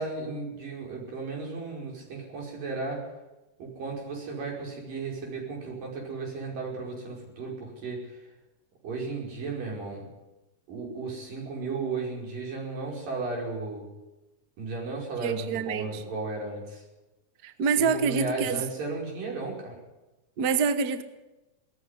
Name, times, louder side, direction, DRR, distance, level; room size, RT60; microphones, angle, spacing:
voice 1, 0.0-3.1 3.6-8.3 8.8-10.1 10.7-13.9 14.6-16.8 17.6-19.8, right 3 dB, 90° right, -1 dB, 7.0 m, -35 dB
voice 2, 15.2-15.9 17.4-18.6 20.4-21.0, right 5 dB, 60° right, 10 dB, 1.0 m, -26 dB
19.0 x 14.5 x 9.7 m, 1.0 s
omnidirectional pair, 3.8 m